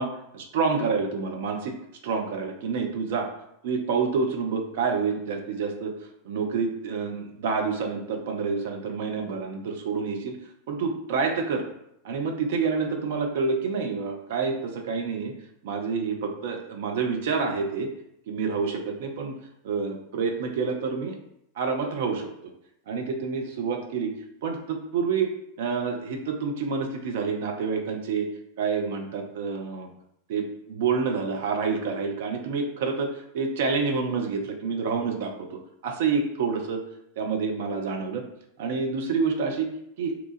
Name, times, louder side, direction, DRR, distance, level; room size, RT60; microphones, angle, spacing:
voice 1, 0.0-1.8 2.0-3.3 3.6-5.9 6.2-10.4 10.7-11.6 12.0-15.3 15.6-17.9 18.3-19.4 19.6-21.2 21.6-22.5 22.9-24.1 24.4-25.3 25.6-28.3 28.6-29.9 30.3-36.8 37.2-38.2 38.6-39.7 40.0-40.1, right 5 dB, 55° right, 3 dB, 0.6 m, -28 dB
2.9 x 2.3 x 4.0 m, 0.78 s
figure-of-eight pair, 90°, 0 cm